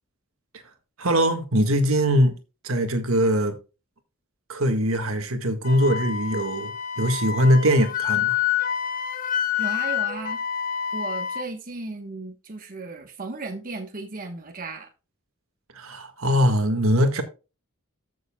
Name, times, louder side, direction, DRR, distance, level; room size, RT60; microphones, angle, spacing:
voice 1, 1.0-2.4 2.6-3.6 4.5-8.4 15.7-17.2, equal, 70° right, 1.7 m, -22 dB
Wind instrument woodwind instrument, 5.6-11.5, left 9 dB, 40° left, 1.1 m, -27 dB
voice 2, 9.6-10.4 10.9-14.9, right 3 dB, 40° right, 1.2 m, -35 dB
14.5 x 6.9 x 2.3 m
head